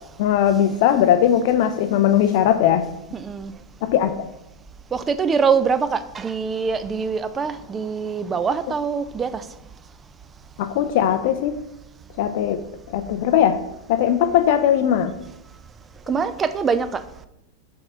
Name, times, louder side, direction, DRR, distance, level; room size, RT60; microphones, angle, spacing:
voice 1, 0.2-2.9 3.8-4.1 10.6-11.5 12.2-12.6 12.9-13.6 13.9-15.1, left 10 dB, 50° left, 9 dB, 0.4 m, -19 dB
voice 2, 3.1-3.5 4.9-9.4 16.1-17.0, right 5 dB, 20° right, 13 dB, 0.3 m, -23 dB
6.0 x 3.8 x 4.4 m, 0.86 s
figure-of-eight pair, 90°, 0 cm